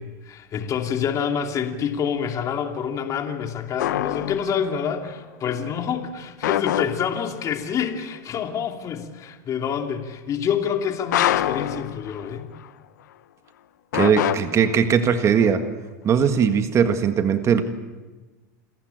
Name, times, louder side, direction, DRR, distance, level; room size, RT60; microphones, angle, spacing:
voice 1, 0.0-12.5, left 7 dB, 35° left, 4 dB, 2.7 m, -27 dB
sound 1, 3.8-4.8 6.4-7.5 11.1-12.7 13.9-15.2, left 12 dB, 85° left, 1.2 m, -25 dB
voice 2, 13.9-15.6 16.0-17.6, right 7 dB, 30° right, 8 dB, 1.7 m, -19 dB
28.0 x 15.0 x 9.2 m, 1.2 s
supercardioid pair, 115°, 10 cm